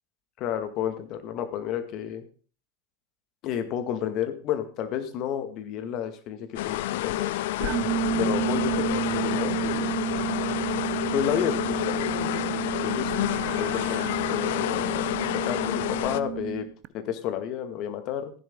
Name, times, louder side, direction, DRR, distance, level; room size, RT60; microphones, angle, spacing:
voice 1, 0.4-2.2 3.4-7.4 8.2-9.9 11.1-12.1 12.8-13.1 13.6-15.0 15.3-16.7 16.9-18.3, left 10 dB, 45° left, 8 dB, 2.1 m, -31 dB
sound 1, 6.6-16.2, left 15 dB, 65° left, 0.6 m, -29 dB
sound 2, 7.6-16.9, right 14 dB, 45° right, 0.8 m, -31 dB
15.0 x 11.0 x 3.9 m, 0.40 s
hypercardioid pair, 90°, 0 cm